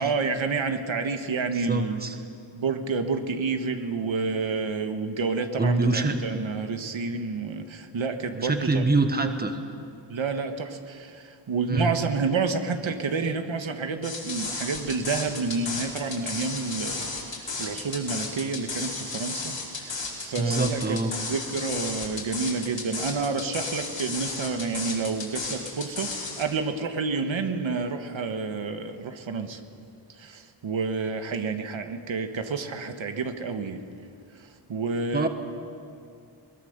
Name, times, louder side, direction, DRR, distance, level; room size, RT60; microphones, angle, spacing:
voice 1, 0.0-2.0 2.5-8.8 10.1-21.0 21.2-29.6 30.2-33.8 34.7-35.3, right 4 dB, 75° right, 6 dB, 1.5 m, -29 dB
voice 2, 1.5-2.2 5.6-6.2 8.3-9.6 11.7-11.9 20.4-21.1 35.1-35.3, right 3 dB, 20° right, 6 dB, 1.3 m, -25 dB
sound 1, 14.0-26.4, left 3 dB, 60° left, 4.7 m, -33 dB
22.0 x 20.5 x 6.8 m, 2.4 s
wide cardioid pair, 140°, 48 cm